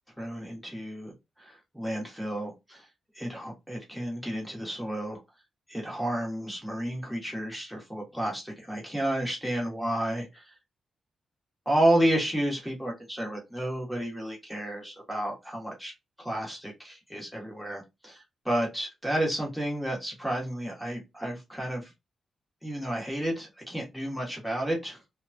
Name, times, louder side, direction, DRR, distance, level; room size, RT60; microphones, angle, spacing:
voice 1, 0.2-2.8 3.1-5.2 5.7-10.4 11.6-15.9 16.2-21.9 22.6-25.0, right 1 dB, ahead, -1 dB, 1.2 m, -31 dB
3.1 x 2.2 x 2.7 m, 0.22 s
wide cardioid pair, 165°, 0 cm